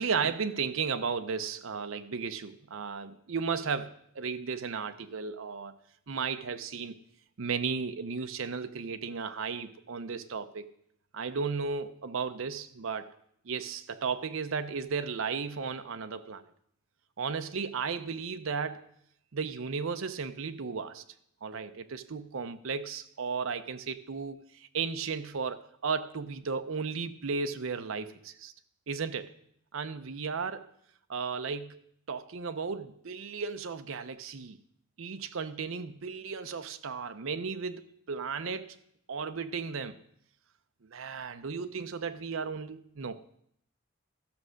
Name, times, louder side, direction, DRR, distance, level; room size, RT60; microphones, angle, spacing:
voice 1, 0.0-5.7 6.1-7.0 7.4-10.7 11.1-13.1 13.4-16.5 17.2-18.8 19.3-21.0 21.4-28.5 28.9-29.3 29.7-30.6 31.1-31.8 32.1-34.6 35.0-38.8 39.1-40.0 40.8-43.2, right 5 dB, 70° right, 0.6 m, -34 dB
13.5 x 6.3 x 6.4 m
head